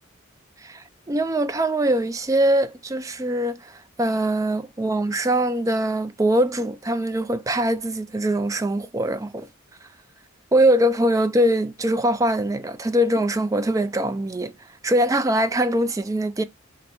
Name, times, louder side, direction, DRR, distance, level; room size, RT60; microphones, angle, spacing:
voice 1, 0.6-9.5 10.5-14.5 14.8-16.4, right 1 dB, 15° right, 0.3 m, -22 dB
4.2 x 2.5 x 4.3 m
head